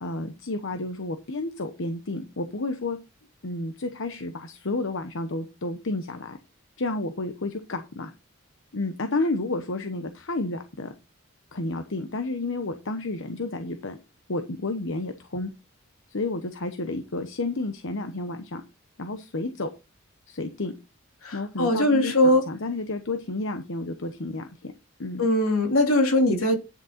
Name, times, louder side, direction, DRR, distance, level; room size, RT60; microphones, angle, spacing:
voice 1, 0.0-3.0 3.4-6.4 6.8-8.1 8.7-10.9 11.5-14.0 14.3-15.5 16.1-18.6 19.0-19.7 20.3-20.7 21.3-24.7 25.0-25.2, left 2 dB, 65° left, 1.0 m, -31 dB
voice 2, 21.2-22.4 25.2-26.6, left 1 dB, 80° left, 2.8 m, -21 dB
10.5 x 6.4 x 4.3 m
head